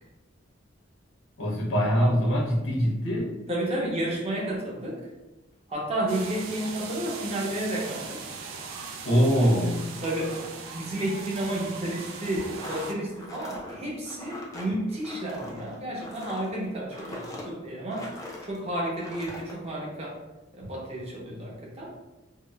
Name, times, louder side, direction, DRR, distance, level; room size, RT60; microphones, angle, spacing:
voice 1, 1.4-3.3 9.0-9.9, equal, 85° left, -2 dB, 0.7 m, -23 dB
voice 2, 3.5-5.0 5.7-8.2 10.0-10.5 10.7-18.1 18.4-20.2 20.5-21.9, right 1 dB, 30° right, -4 dB, 0.7 m, -31 dB
sound 1, 6.1-12.9, right 4 dB, 90° right, 0.4 m, -39 dB
sound 2, 12.4-18.6 18.9-19.5, left 1 dB, 20° left, 0.4 m, -41 dB
3.6 x 2.0 x 2.2 m, 1.0 s
head